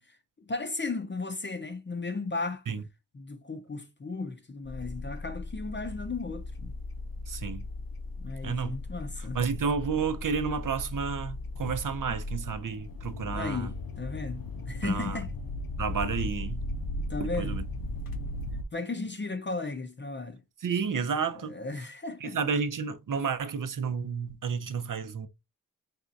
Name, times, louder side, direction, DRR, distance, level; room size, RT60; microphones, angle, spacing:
voice 1, 0.0-2.8 3.1-6.8 8.2-9.4 13.3-15.3 17.0-17.6 18.7-20.4 21.4-22.4, left 3 dB, 30° left, 0.6 m, -35 dB
sound 1, 4.6-18.6, left 2 dB, 75° left, 0.7 m, -37 dB
voice 2, 7.3-7.6 8.4-8.8 9.3-13.7 14.8-15.2 15.8-16.6 17.2-17.6 20.6-21.6 22.2-25.3, right 6 dB, 65° right, 0.6 m, -31 dB
4.2 x 3.4 x 2.5 m
wide cardioid pair, 75°, 35 cm